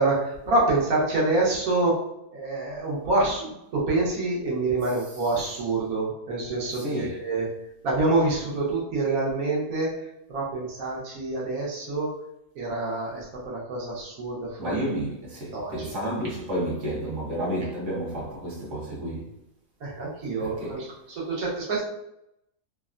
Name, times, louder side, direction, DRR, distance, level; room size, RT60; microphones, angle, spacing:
voice 1, 0.0-2.0 2.3-7.5 7.8-10.0 10.3-12.1 12.5-14.8 15.5-15.9 19.8-21.8, right 2 dB, 70° right, 1.4 m, -26 dB
voice 2, 4.8-5.5 6.7-7.3 14.6-19.3 20.4-20.9, right 1 dB, 55° right, 1.2 m, -31 dB
3.4 x 2.1 x 2.4 m
omnidirectional pair, 1.6 m